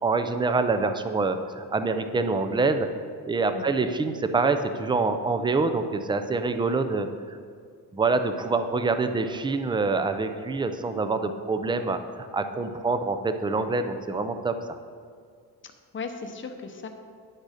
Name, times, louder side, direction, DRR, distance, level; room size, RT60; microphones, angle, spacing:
voice 1, 0.0-2.9 3.2-7.4 7.9-14.5, right 3 dB, 15° right, 8 dB, 0.3 m, -26 dB
voice 2, 3.5-3.9 15.6-16.9, left 5 dB, 30° left, 6 dB, 0.7 m, -37 dB
10.0 x 6.6 x 4.9 m, 2.1 s
cardioid pair, 155°, 41 cm